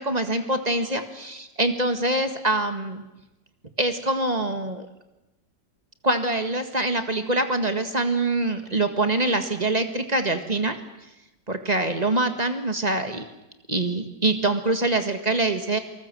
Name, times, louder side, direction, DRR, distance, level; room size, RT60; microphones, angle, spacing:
voice 1, 0.0-3.0 3.8-4.9 6.0-10.8 11.5-13.3 13.7-15.8, right 2 dB, 25° right, 7 dB, 1.7 m, -24 dB
27.5 x 19.5 x 7.6 m, 0.98 s
omnidirectional pair, 1.9 m